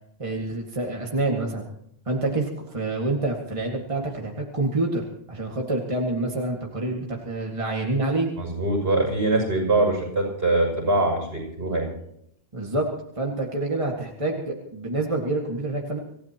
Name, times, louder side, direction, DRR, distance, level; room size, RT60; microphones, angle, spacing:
voice 1, 0.2-1.7 2.1-8.3 12.5-12.9 13.2-16.0, right 2 dB, 30° right, -1 dB, 2.0 m, -27 dB
voice 2, 8.4-11.9, right 2 dB, 70° right, -1 dB, 7.2 m, -23 dB
27.0 x 16.0 x 3.0 m, 0.74 s
omnidirectional pair, 1.1 m